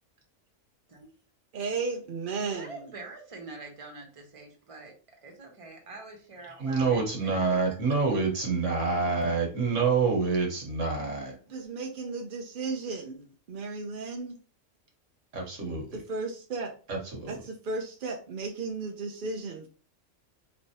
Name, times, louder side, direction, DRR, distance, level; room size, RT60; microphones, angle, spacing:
voice 1, 1.5-2.8 11.5-14.4 15.9-16.7 17.3-19.7, right 4 dB, 55° right, 1 dB, 0.7 m, -34 dB
voice 2, 2.3-4.9 5.2-7.4 7.7-7.8 8.1-8.2, right 3 dB, 30° right, 1 dB, 1.1 m, -45 dB
voice 3, 6.6-11.3 15.3-16.0 16.9-17.4, right 4 dB, 75° right, 0 dB, 1.5 m, -27 dB
4.0 x 3.4 x 2.8 m, 0.38 s
omnidirectional pair, 1.3 m